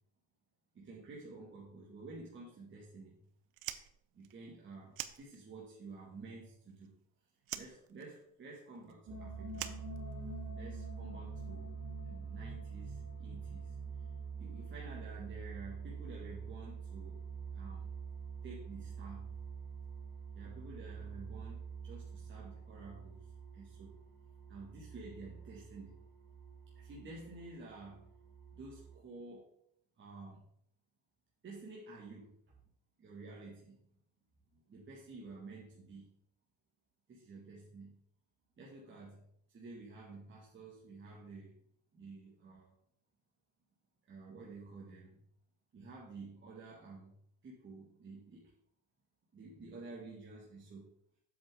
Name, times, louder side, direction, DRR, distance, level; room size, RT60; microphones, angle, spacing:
voice 1, 0.7-3.2 4.1-7.0 7.5-9.8 10.5-11.8 12.0-13.8 14.4-17.2 17.5-17.9 18.4-19.3 20.3-23.3 23.5-24.0 24.5-25.9 26.8-28.1 28.5-29.5 30.0-30.4 31.4-32.5 33.0-33.8 34.5-36.1 37.1-38.0 38.6-39.2 39.5-41.6 41.9-42.8 44.1-45.2 45.7-47.2 47.4-48.5 49.3-50.9, right 3 dB, 35° right, -5 dB, 2.3 m, -51 dB
Fire, 3.5-5.8 6.1-7.1 7.4-10.6, right 14 dB, 75° right, 0.8 m, -46 dB
sound 1, 9.1-29.0, right 5 dB, 60° right, 2.9 m, -46 dB
7.8 x 7.3 x 3.9 m, 0.71 s
supercardioid pair, 100°, 35 cm